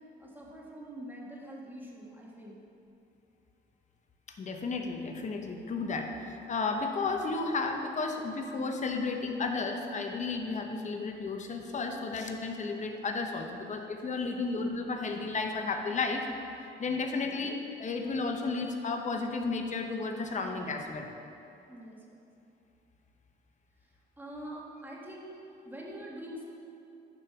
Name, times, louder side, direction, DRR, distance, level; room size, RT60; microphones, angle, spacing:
voice 1, 0.2-2.6 14.2-14.4 17.1-17.3 21.7-22.2 24.2-25.4 25.6-26.4, right 1 dB, 10° right, -3 dB, 1.4 m, -45 dB
voice 2, 4.4-16.3 16.8-21.1, left 3 dB, 35° left, 4 dB, 0.8 m, -33 dB
9.6 x 3.3 x 5.7 m, 2.7 s
cardioid pair, 90°, 20 cm